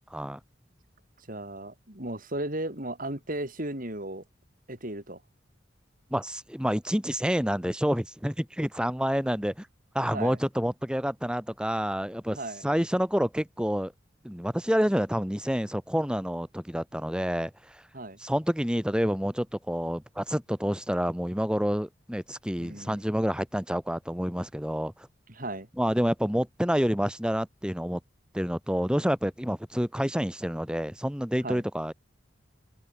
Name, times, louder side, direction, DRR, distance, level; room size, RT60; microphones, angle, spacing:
voice 1, 1.3-4.2 4.7-5.2 10.0-10.4 12.3-12.6 17.9-18.2 22.6-23.0 25.3-25.7 31.4-31.6, right 1 dB, 45° right, 4.9 m, -35 dB
voice 2, 6.1-9.7 9.9-12.4 12.6-13.9 14.2-17.8 18.2-24.9 25.8-28.0 28.3-31.9, equal, 5° right, 2.5 m, -28 dB
head